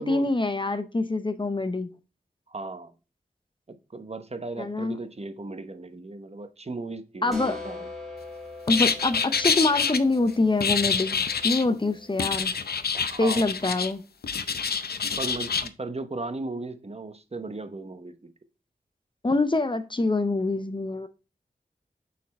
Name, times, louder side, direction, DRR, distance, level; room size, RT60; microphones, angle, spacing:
voice 1, 0.0-1.9 4.6-5.0 7.2-7.6 8.7-11.2 11.4-12.5 13.2-14.0 19.2-21.1, left 2 dB, 30° left, 0.7 m, -25 dB
voice 2, 2.5-2.9 3.7-7.8 12.9-13.5 15.2-18.3, right 3 dB, 40° right, 0.9 m, -36 dB
sound 1, 7.3-12.8, left 3 dB, ahead, 3.0 m, -42 dB
sound 2, 8.7-10.0 10.6-11.7 12.2-13.9 14.2-15.7, left 6 dB, 85° left, 0.5 m, -26 dB
6.5 x 4.2 x 4.1 m
wide cardioid pair, 45°, 16 cm